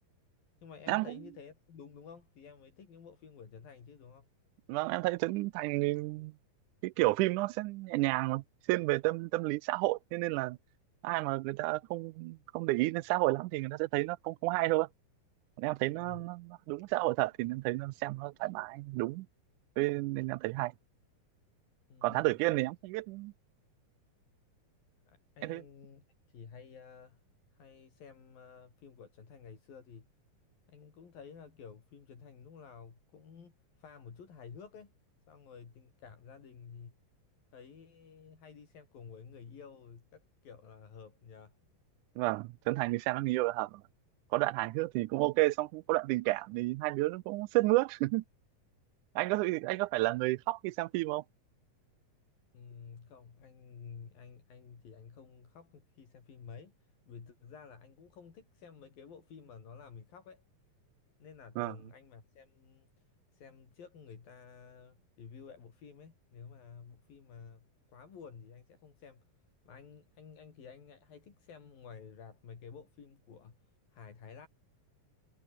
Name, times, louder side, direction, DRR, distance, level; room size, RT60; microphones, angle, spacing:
voice 1, 0.6-4.3 15.8-16.3 21.9-22.3 22.5-22.7 25.1-27.2 27.5-30.1 30.7-34.9 35.3-36.9 37.5-41.5 52.5-56.7 57.1-60.4 61.2-62.9 63.3-69.2 69.7-73.6 73.9-74.5, left 6 dB, 75° left, 5.9 m, -52 dB
voice 2, 4.7-6.3 6.8-10.6 11.0-14.9 15.6-19.3 19.8-20.7 22.0-23.3 25.4-25.6 42.2-43.8 44.3-48.2 49.1-51.2 61.6-61.7, right 20 dB, 85° right, 1.8 m, -31 dB
omnidirectional pair, 4.1 m